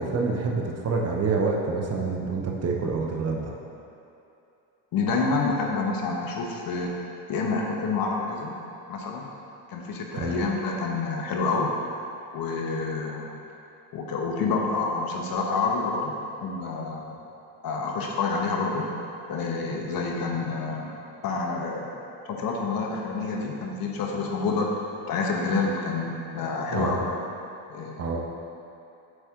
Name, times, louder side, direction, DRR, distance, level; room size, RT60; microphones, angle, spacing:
voice 1, 0.0-3.5 10.1-10.4 26.7-27.0 28.0-28.2, right 4 dB, 35° right, -1 dB, 0.8 m, -27 dB
voice 2, 4.9-6.9 7.3-8.6 8.9-9.3 9.7-11.7 12.3-13.3 13.9-16.1 16.4-17.2 17.6-18.9 19.3-20.9 21.2-21.9 22.2-24.7 25.1-27.1 27.7-28.0, left 4 dB, 50° left, 0 dB, 1.1 m, -28 dB
8.0 x 4.2 x 3.7 m, 2.8 s
supercardioid pair, 100°, 45 cm